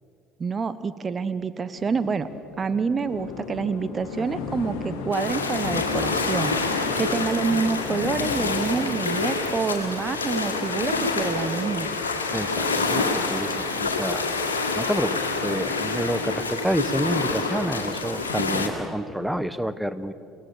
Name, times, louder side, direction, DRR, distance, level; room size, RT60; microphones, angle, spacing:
voice 1, 0.4-2.3 2.6-6.5 7.0-11.9, right 5 dB, 30° right, 13 dB, 1.0 m, -27 dB
sound 1, 1.8-10.6, left 5 dB, 65° left, 2.1 m, -35 dB
sound 2, 5.1-18.7, left 3 dB, 85° left, 2.0 m, -27 dB
voice 2, 12.3-14.3 14.7-20.1, equal, 5° right, 13 dB, 1.1 m, -29 dB
28.5 x 17.5 x 6.7 m, 2.7 s
figure-of-eight pair, 60°, 0 cm